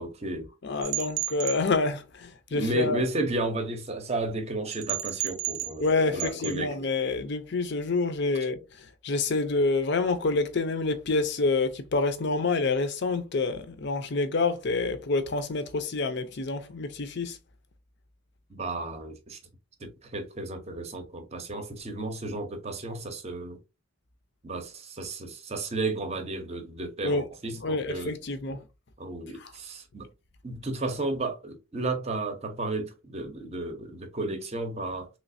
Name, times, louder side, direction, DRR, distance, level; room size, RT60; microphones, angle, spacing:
voice 1, 0.0-0.5 2.5-6.7 18.5-19.4 19.8-23.6 24.4-28.1 28.5-28.6 29.0-30.1 30.4-35.1, right 2 dB, 30° right, 0.7 m, -33 dB
voice 2, 0.6-3.0 5.8-8.6 9.0-17.4 27.0-27.2 27.6-28.6, left 3 dB, 55° left, 0.5 m, -27 dB
sound 1, 0.8-1.6 4.7-5.9 6.2-6.6, right 13 dB, 75° right, 0.5 m, -32 dB
3.1 x 3.1 x 2.6 m
head